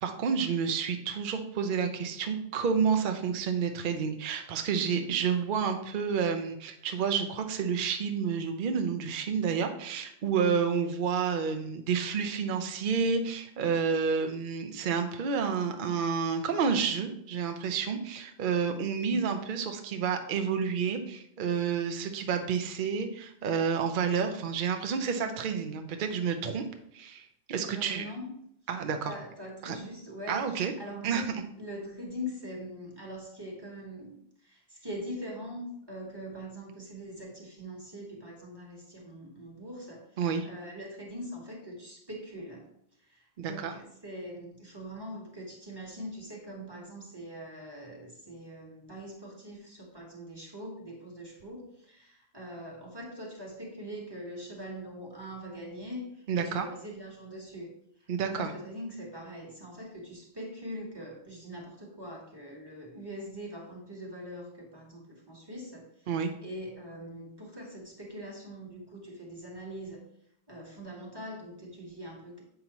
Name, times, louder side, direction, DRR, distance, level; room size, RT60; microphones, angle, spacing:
voice 1, 0.0-26.6 26.9-28.0 28.7-29.1 29.6-29.7 30.3-30.7 31.0-31.3 40.2-40.5 43.4-43.7 56.3-56.7 58.1-58.5 66.1-66.3, right 6 dB, 50° right, 6 dB, 0.7 m, -30 dB
voice 2, 27.6-28.4 29.0-42.7 43.1-57.7 58.0-66.1 66.4-70.0 70.5-72.4, equal, 20° right, -1 dB, 1.4 m, -42 dB
7.8 x 5.4 x 3.0 m, 0.72 s
omnidirectional pair, 1.3 m